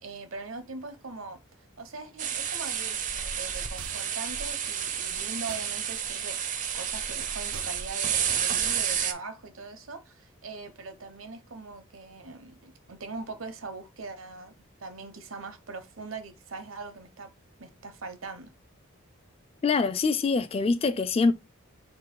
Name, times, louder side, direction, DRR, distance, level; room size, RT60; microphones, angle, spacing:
voice 1, 0.0-1.4 1.8-17.3 17.6-18.5, right 3 dB, 70° right, 0.8 m, -41 dB
sound 1, 2.2-9.1, right 8 dB, 35° right, 0.5 m, -30 dB
sound 2, 3.8-4.3 5.5-5.8 7.5-8.0, right 9 dB, 90° right, 0.4 m, -45 dB
voice 2, 19.6-21.3, left 4 dB, 25° left, 0.3 m, -24 dB
3.8 x 2.7 x 4.5 m
head